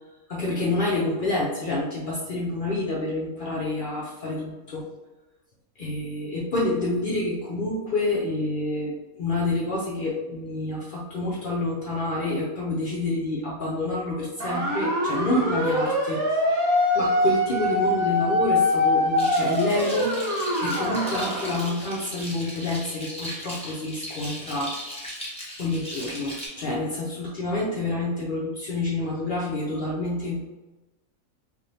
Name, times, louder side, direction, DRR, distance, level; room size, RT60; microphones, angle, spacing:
voice 1, 0.3-4.8 5.8-16.2 16.9-20.1 20.6-24.7 25.6-30.4, left 2 dB, 70° left, -5 dB, 0.4 m, -28 dB
sound 1, 14.4-21.6, left 1 dB, 90° right, 1.1 m, -24 dB
sound 2, 19.2-26.5, equal, 5° left, 0.6 m, -37 dB
3.4 x 2.4 x 2.6 m, 1.1 s
omnidirectional pair, 1.5 m